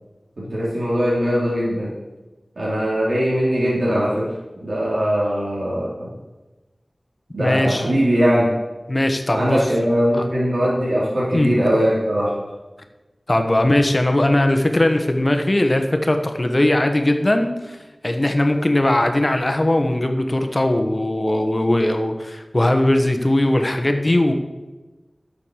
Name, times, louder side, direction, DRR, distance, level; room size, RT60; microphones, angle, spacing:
voice 1, 0.4-1.9 2.6-4.3 4.6-6.1 7.3-8.5 9.3-12.3, equal, 85° right, -7 dB, 3.1 m, -20 dB
voice 2, 7.4-7.9 8.9-9.6 10.1-10.2 11.3-11.5 13.3-17.8 18.0-24.3, left 1 dB, 40° left, 6 dB, 1.3 m, -19 dB
10.5 x 6.7 x 7.4 m, 1.1 s
wide cardioid pair, 40°, 0 cm